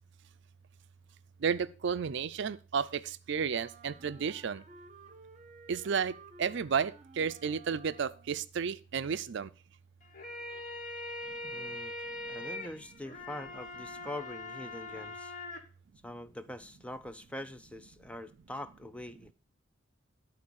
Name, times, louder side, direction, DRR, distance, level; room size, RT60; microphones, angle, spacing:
voice 1, 1.4-4.6 5.7-9.5, right 6 dB, 60° right, 0.4 m, -32 dB
Wind instrument woodwind instrument, 3.5-8.5, right 4 dB, 35° right, 0.8 m, -55 dB
sound 1, 10.0-15.6, left 2 dB, 40° left, 1.2 m, -42 dB
voice 2, 11.4-11.9 12.3-15.3 16.0-19.3, left 1 dB, 5° left, 0.4 m, -44 dB
11.0 x 3.9 x 6.2 m
head